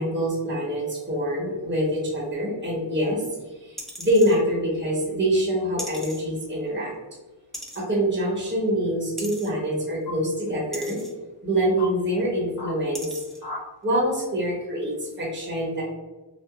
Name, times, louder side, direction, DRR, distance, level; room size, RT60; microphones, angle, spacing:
voice 1, 0.0-3.2 3.6-6.9 7.7-11.0 11.4-13.2 13.8-15.8, equal, 25° right, -4 dB, 1.1 m, -25 dB
sound 1, 3.8-4.4 5.8-6.2 7.5-7.9 9.2-9.5 10.7-11.1 12.2-12.3 12.9-13.4 13.9-14.0, equal, ahead, 0.7 m, -38 dB
sound 2, 5.9-6.0 7.5-8.0 10.0-10.2 11.0-11.1 11.8-11.9 12.6-12.8 13.4-13.6, left 2 dB, 45° left, 1.4 m, -36 dB
4.6 x 2.2 x 2.4 m, 1.2 s
wide cardioid pair, 65°, 46 cm